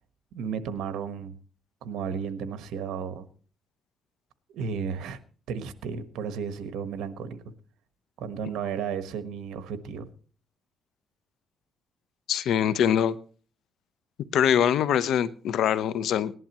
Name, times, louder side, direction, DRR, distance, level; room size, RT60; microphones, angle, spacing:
voice 1, 0.3-1.3 1.8-3.3 4.5-5.2 5.5-7.4 8.2-10.1, right 6 dB, 85° right, 1.3 m, -33 dB
voice 2, 12.3-13.2 14.3-16.3, left 9 dB, 75° left, 0.8 m, -23 dB
18.5 x 11.0 x 3.0 m
cardioid pair, 90°, 0 cm